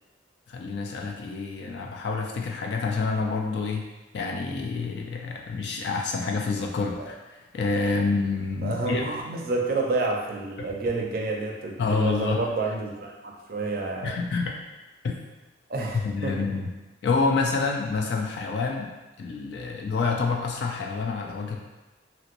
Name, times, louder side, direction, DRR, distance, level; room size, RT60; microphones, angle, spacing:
voice 1, 0.5-3.8 4.1-9.1 10.6-10.7 11.8-12.5 14.0-14.6 15.0-15.2 16.0-16.7 17.0-18.9 19.2-21.6, left 4 dB, 60° left, 1 dB, 0.3 m, -28 dB
voice 2, 8.6-14.1 15.7-16.3, right 3 dB, 50° right, 0 dB, 0.4 m, -29 dB
2.9 x 2.9 x 2.5 m, 1.1 s
head